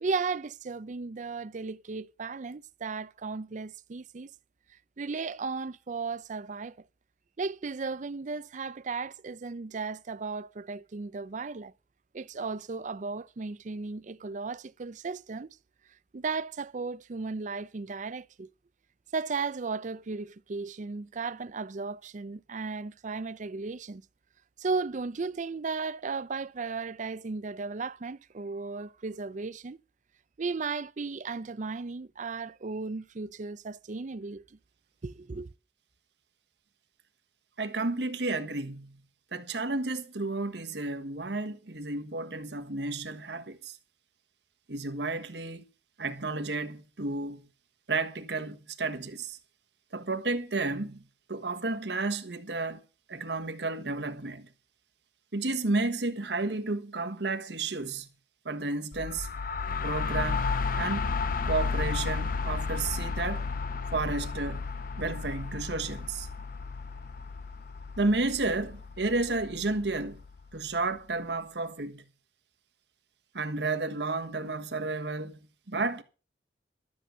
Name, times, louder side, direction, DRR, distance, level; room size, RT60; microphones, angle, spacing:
voice 1, 0.0-4.3 5.0-6.8 7.4-11.7 12.1-15.6 16.1-18.5 19.1-24.0 24.6-29.8 30.4-34.6 35.0-35.5, right 4 dB, 45° right, 0.5 m, -35 dB
voice 2, 37.6-39.0 39.3-43.8 44.7-45.6 46.0-47.4 47.9-49.4 49.9-51.0 51.3-52.8 53.1-54.5 55.3-58.1 58.4-59.3 59.8-60.5 60.7-61.2 61.4-63.5 63.9-66.3 68.0-70.2 70.5-72.0 73.3-75.4 75.7-76.0, right 3 dB, 75° right, 1.4 m, -32 dB
sound 1, 58.9-70.6, left 4 dB, 55° left, 0.6 m, -33 dB
12.5 x 7.7 x 6.8 m
head